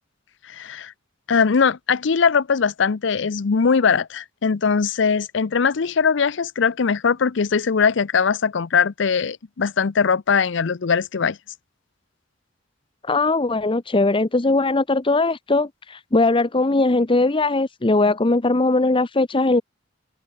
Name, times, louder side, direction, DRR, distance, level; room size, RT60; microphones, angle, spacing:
voice 1, 0.5-0.9 1.3-11.4, left 5 dB, 65° left, 0.6 m, -20 dB
voice 2, 13.0-19.6, left 2 dB, 25° left, 0.8 m, -20 dB
head